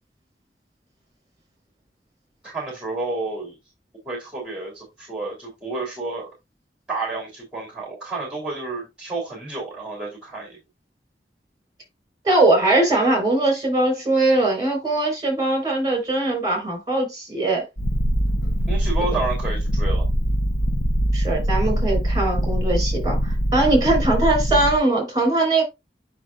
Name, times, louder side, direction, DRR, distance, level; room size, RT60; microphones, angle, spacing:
voice 1, 2.4-3.6 4.0-6.3 6.9-10.6 18.7-20.0, right 3 dB, 5° right, 3.2 m, -30 dB
voice 2, 12.2-17.6 21.1-25.6, right 2 dB, 25° right, 4.3 m, -21 dB
Purr, 17.8-24.8, equal, 60° left, 1.0 m, -22 dB
9.1 x 5.9 x 2.4 m
head